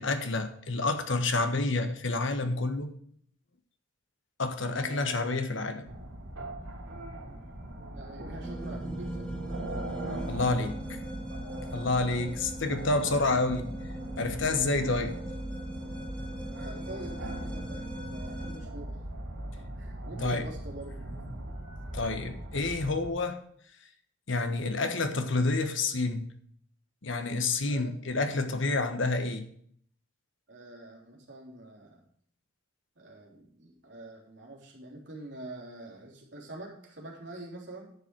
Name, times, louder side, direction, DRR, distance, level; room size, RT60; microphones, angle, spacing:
voice 1, 0.0-2.9 4.4-5.9 10.3-11.0 11.7-13.7 14.2-15.2 20.2-20.5 21.9-23.4 24.3-26.2 27.0-29.5, left 3 dB, 70° left, 1.3 m, -29 dB
voice 2, 4.7-5.2 7.9-9.3 14.7-15.1 16.5-19.0 19.8-21.1 27.7-27.9 30.5-32.0 33.0-37.9, right 1 dB, 60° right, 3.5 m, -45 dB
sound 1, 5.9-23.1, right 1 dB, 90° right, 3.1 m, -40 dB
sound 2, 8.4-18.6, right 1 dB, 5° left, 1.6 m, -39 dB
10.5 x 6.9 x 4.7 m
head